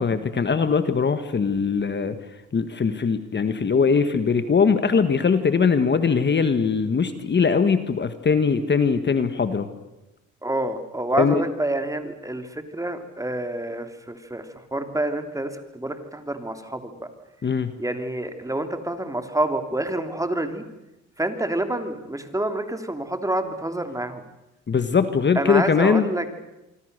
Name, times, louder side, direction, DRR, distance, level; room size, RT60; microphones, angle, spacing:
voice 1, 0.0-2.2 2.5-9.7 11.2-11.4 17.4-17.7 24.7-26.1, left 5 dB, 35° left, 10 dB, 1.7 m, -21 dB
voice 2, 10.4-17.1 17.8-20.6 21.2-24.2 25.3-26.3, right 1 dB, 10° right, 7 dB, 3.0 m, -28 dB
25.5 x 25.0 x 6.8 m, 0.96 s
cardioid pair, 90°, 30 cm